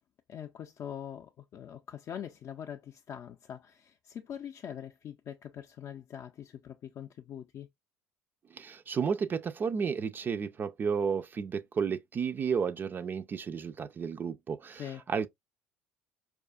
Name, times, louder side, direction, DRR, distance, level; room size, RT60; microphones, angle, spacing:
voice 1, 0.3-7.7 14.8-15.0, left 9 dB, 45° left, 0.4 m, -43 dB
voice 2, 8.5-15.3, right 6 dB, 35° right, 0.3 m, -32 dB
4.7 x 2.4 x 2.4 m
hypercardioid pair, 75°, 6 cm